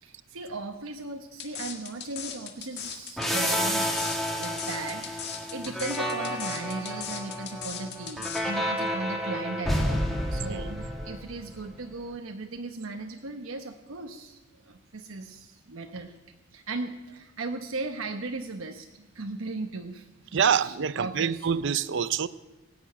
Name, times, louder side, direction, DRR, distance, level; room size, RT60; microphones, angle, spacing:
voice 1, 0.0-14.4 14.7-16.1 16.5-21.5, right 3 dB, 80° right, 1.0 m, -37 dB
sound 1, 1.4-8.4, left 8 dB, 55° left, 1.7 m, -38 dB
sound 2, 3.2-11.6, equal, ahead, 1.8 m, -30 dB
voice 2, 10.3-10.9 20.3-22.3, right 7 dB, 60° right, 0.5 m, -26 dB
18.0 x 7.1 x 8.9 m
head